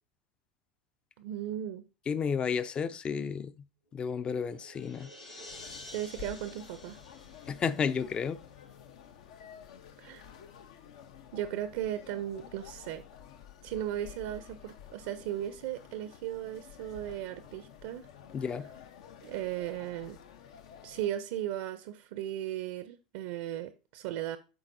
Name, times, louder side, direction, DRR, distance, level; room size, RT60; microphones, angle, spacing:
voice 1, 1.2-1.8 5.9-7.0 10.0-10.2 11.3-13.0 13.6-18.1 19.2-20.2 20.8-24.4, right 11 dB, 60° right, 0.6 m, -36 dB
voice 2, 2.1-3.7 3.9-5.1 7.5-8.4 18.3-18.7, left 6 dB, 25° left, 0.5 m, -32 dB
sound 1, 3.9-8.5, left 2 dB, 80° left, 3.3 m, -50 dB
sound 2, 5.5-21.1, left 8 dB, 65° left, 0.7 m, -51 dB
11.5 x 3.9 x 2.6 m
hypercardioid pair, 90°, 4 cm